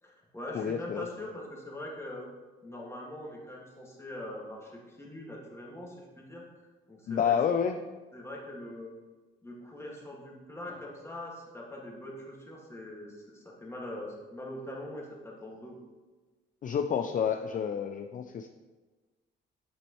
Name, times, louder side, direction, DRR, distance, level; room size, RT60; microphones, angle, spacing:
voice 1, 0.0-2.3 2.6-6.4 6.9-7.3 8.1-8.9 9.4-15.8, left 1 dB, 15° left, -3 dB, 2.0 m, -42 dB
voice 2, 0.5-1.1 7.1-7.8 16.6-18.5, left 7 dB, 40° left, 7 dB, 0.4 m, -29 dB
8.2 x 6.1 x 3.1 m, 1.3 s
cardioid pair, 90°, 20 cm